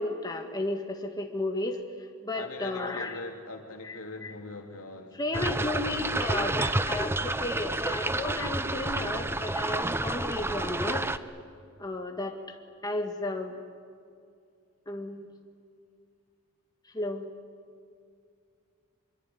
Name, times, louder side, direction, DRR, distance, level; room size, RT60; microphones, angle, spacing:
voice 1, 0.0-1.8 2.2-3.2 3.8-4.3 5.1-11.1 11.8-12.4 12.8-13.6 14.9-15.3 16.9-17.3, left 2 dB, 20° left, 3 dB, 1.7 m, -33 dB
voice 2, 2.3-5.2 5.7-6.0, left 2 dB, 70° left, 3 dB, 3.0 m, -41 dB
sound 1, 5.3-11.2, right 2 dB, 10° right, 0.7 m, -30 dB
25.5 x 23.5 x 9.6 m, 2.3 s
head